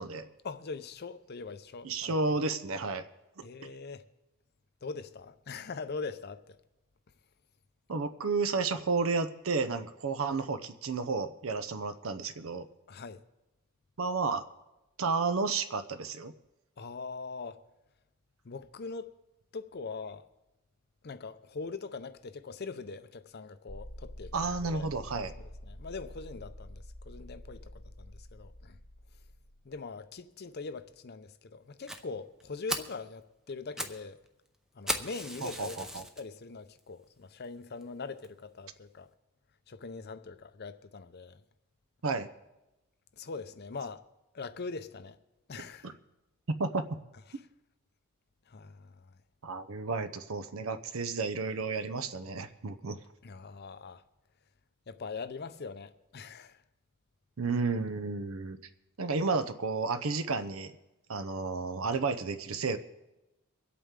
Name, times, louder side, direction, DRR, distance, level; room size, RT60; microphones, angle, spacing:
voice 1, 0.4-2.2 3.4-4.0 4.8-6.6 12.9-13.2 16.8-17.6 18.4-19.1 19.5-20.2 21.0-24.9 25.4-27.7 28.0-28.8 29.6-34.2 34.7-35.9 36.2-39.1 39.7-41.4 43.2-44.0 44.3-45.2 45.5-45.9 47.3-47.4 48.5-49.1 53.2-54.0 54.9-56.6, left 4 dB, 50° left, 0.6 m, -42 dB
voice 2, 1.8-3.0 7.9-12.7 14.0-14.4 15.0-16.3 24.3-25.3 35.4-36.1 42.0-42.3 45.8-45.9 46.6-46.9 49.4-53.0 57.4-58.6 59.0-60.7 61.1-62.8, right 4 dB, 70° right, 0.7 m, -32 dB
sound 1, 23.7-29.8, left 1 dB, 25° left, 1.1 m, -47 dB
Fire, 31.9-32.0 32.4-32.5 32.7-33.0 33.5-34.0 34.3-34.4 34.9-36.2 36.8-36.9 37.4-37.5 37.8-37.9 38.2-38.3, equal, 5° right, 0.6 m, -36 dB
24.0 x 8.5 x 3.7 m
head